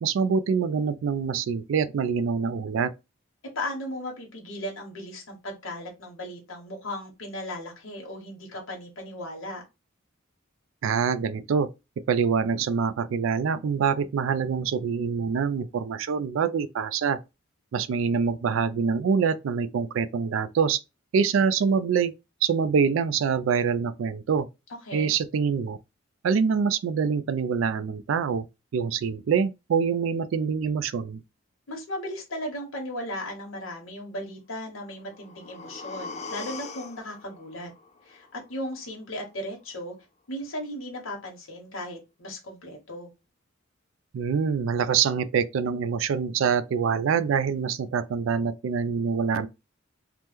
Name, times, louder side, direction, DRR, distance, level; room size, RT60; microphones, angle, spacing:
voice 1, 0.0-2.9 10.8-11.7 12.1-17.2 17.7-20.8 21.1-22.1 22.4-24.5 24.9-25.8 26.2-28.5 28.7-31.2 44.1-49.5, right 6 dB, 75° right, 0.3 m, -25 dB
voice 2, 3.5-9.6 24.9-25.1 31.7-37.7 38.0-39.9 40.3-43.1, left 1 dB, 80° left, 1.0 m, -36 dB
sound 1, 34.9-38.9 39.2-39.3, left 4 dB, 35° left, 0.4 m, -42 dB
2.9 x 2.1 x 3.4 m
head